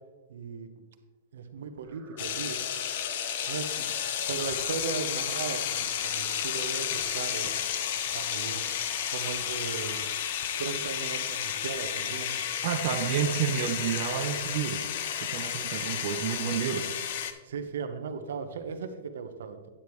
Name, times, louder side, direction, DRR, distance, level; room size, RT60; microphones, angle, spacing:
voice 1, 0.3-0.7 1.3-2.7 3.4-3.9 4.3-7.8 8.1-8.7 9.1-10.0 10.6-12.4 13.1-13.4 17.5-19.6, right 5 dB, 80° right, 8 dB, 1.0 m, -37 dB
sound 1, 1.8-13.2, right 3 dB, 10° right, 2.1 m, -49 dB
sound 2, 2.2-17.3, left 9 dB, 55° left, 0.7 m, -32 dB
voice 2, 12.6-14.8 15.2-16.9, right 9 dB, 45° right, 4 dB, 0.6 m, -30 dB
10.0 x 8.6 x 3.2 m, 1.3 s
supercardioid pair, 165°, 0 cm